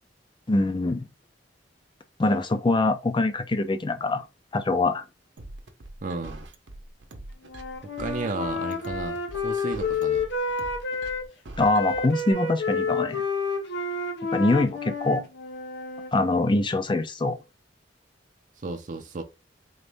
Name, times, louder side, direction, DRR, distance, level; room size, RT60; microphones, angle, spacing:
voice 1, 0.5-1.1 2.2-4.3 4.5-5.0 11.6-13.2 14.3-15.2 16.1-17.4, left 2 dB, 25° left, 0.5 m, -24 dB
sound 1, 5.4-12.3, right 1 dB, 75° right, 0.8 m, -43 dB
voice 2, 6.0-6.4 8.0-10.3 18.6-19.2, right 3 dB, 45° right, 0.5 m, -33 dB
Wind instrument woodwind instrument, 7.5-11.3 11.6-16.1, left 4 dB, 75° left, 0.9 m, -30 dB
4.0 x 2.6 x 3.4 m
head